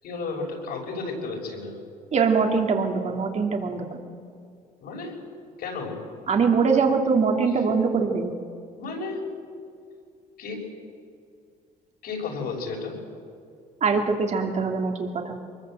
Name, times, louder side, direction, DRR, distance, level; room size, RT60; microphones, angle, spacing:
voice 1, 0.0-1.8 4.8-5.2 5.6-6.0 7.5-7.6 8.8-9.2 10.4-10.7 12.0-13.0, left 3 dB, 70° left, 0 dB, 6.7 m, -33 dB
voice 2, 2.1-4.0 6.3-8.3 13.8-15.4, right 5 dB, 40° right, 3 dB, 2.8 m, -23 dB
23.5 x 21.5 x 7.9 m, 2.3 s
cardioid pair, 110°, 17 cm